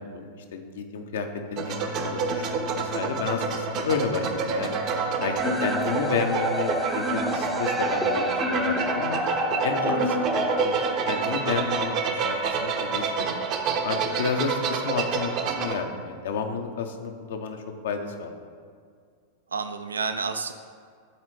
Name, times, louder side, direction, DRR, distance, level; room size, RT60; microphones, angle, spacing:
voice 1, 0.0-1.7 2.0-4.8 5.2-9.2 9.6-10.7 11.1-13.3 13.8-18.3, left 5 dB, 60° left, 5 dB, 0.7 m, -31 dB
sound 1, 1.6-11.5, left 6 dB, 85° left, 0.9 m, -45 dB
sound 2, 1.6-15.7, right 5 dB, 40° right, 0.6 m, -28 dB
voice 2, 4.9-5.3 9.8-10.2 19.5-20.5, right 5 dB, 70° right, 8 dB, 0.3 m, -32 dB
sound 3, 5.4-11.4, left 1 dB, ahead, 0.7 m, -29 dB
11.5 x 4.0 x 3.2 m, 2.1 s
figure-of-eight pair, 90°, 0 cm